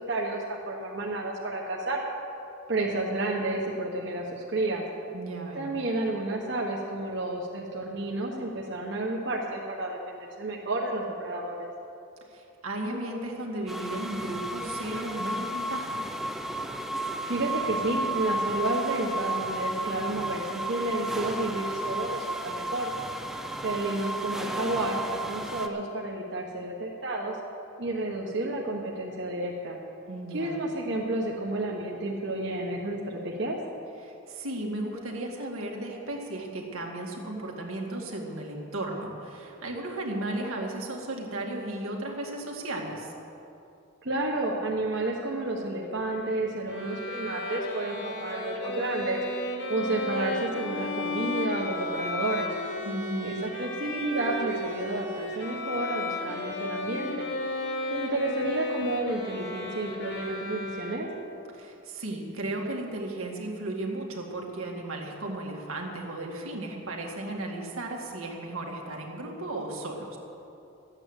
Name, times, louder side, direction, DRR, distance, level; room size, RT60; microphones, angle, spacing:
voice 1, 0.0-2.0 2.7-4.8 5.5-11.6 17.3-22.9 23.6-27.4 27.8-29.8 30.3-33.6 44.0-49.2 49.7-52.5 53.2-57.3 57.9-61.1, right 2 dB, 55° right, -2 dB, 1.3 m, -31 dB
voice 2, 5.1-5.7 12.3-16.0 30.1-30.6 34.0-43.1 52.9-53.4 61.5-70.2, right 1 dB, 85° right, 0 dB, 2.2 m, -35 dB
sound 1, 13.7-25.7, right 1 dB, ahead, 0.6 m, -33 dB
Bowed string instrument, 46.7-61.3, left 2 dB, 55° left, 1.6 m, -34 dB
13.0 x 8.9 x 8.1 m, 2.8 s
head